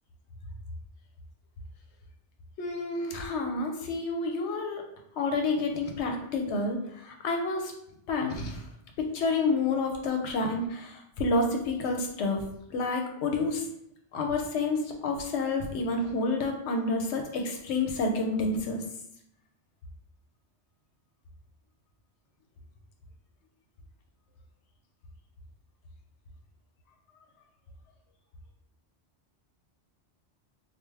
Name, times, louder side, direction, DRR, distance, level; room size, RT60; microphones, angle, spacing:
voice 1, 2.6-4.8 5.2-7.7 8.1-8.6 9.0-12.4 12.7-13.6 14.1-18.8, left 3 dB, 75° left, 3 dB, 0.9 m, -29 dB
3.3 x 2.3 x 3.3 m, 0.75 s
omnidirectional pair, 1.2 m